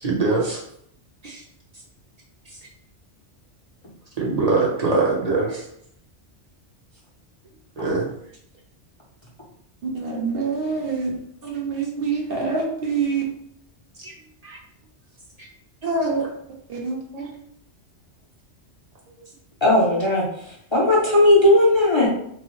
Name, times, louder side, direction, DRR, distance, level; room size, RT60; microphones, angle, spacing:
voice 1, 0.0-0.6 1.2-1.4 4.2-5.7 7.8-8.1 14.0-14.1 14.4-14.6 15.8-16.3 17.1-17.3, right 3 dB, 35° right, -4 dB, 0.9 m, -23 dB
voice 2, 9.8-11.1 11.4-13.2 16.0-16.2 16.7-17.0, right 5 dB, 60° right, -1 dB, 0.9 m, -26 dB
voice 3, 19.6-20.3 20.7-22.1, left 1 dB, 30° left, -4 dB, 0.7 m, -16 dB
3.5 x 3.1 x 3.0 m, 0.69 s
omnidirectional pair, 1.2 m